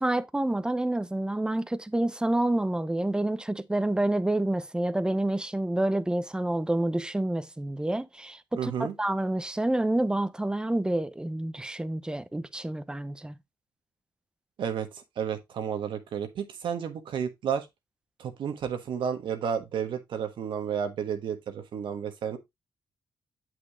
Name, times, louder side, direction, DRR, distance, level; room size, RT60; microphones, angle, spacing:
voice 1, 0.0-13.4, right 1 dB, 10° right, 0.6 m, -28 dB
voice 2, 8.6-8.9 14.6-14.9 15.2-17.7 18.2-22.4, right 7 dB, 75° right, 1.3 m, -31 dB
7.8 x 6.1 x 2.4 m
cardioid pair, 75°, 9 cm